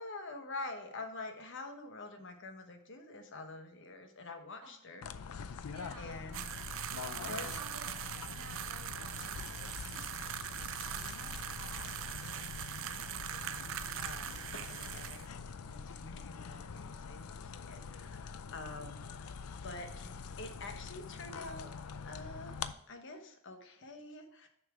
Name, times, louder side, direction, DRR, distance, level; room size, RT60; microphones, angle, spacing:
voice 1, 0.0-5.1 5.3-6.5 6.8-7.5 9.2-9.9 10.8-12.5 12.8-12.9 13.9-22.6 22.9-24.5, left 2 dB, 60° left, 6 dB, 1.0 m, -47 dB
sound 1, 5.0-22.7, left 5 dB, 90° left, 0.5 m, -45 dB
voice 2, 5.7-6.2 6.9-7.9 8.2-10.0, right 3 dB, 80° right, 2 dB, 1.8 m, -52 dB
sound 2, 6.3-15.3, right 11 dB, 60° right, 0.4 m, -42 dB
6.6 x 5.7 x 4.9 m, 0.76 s
head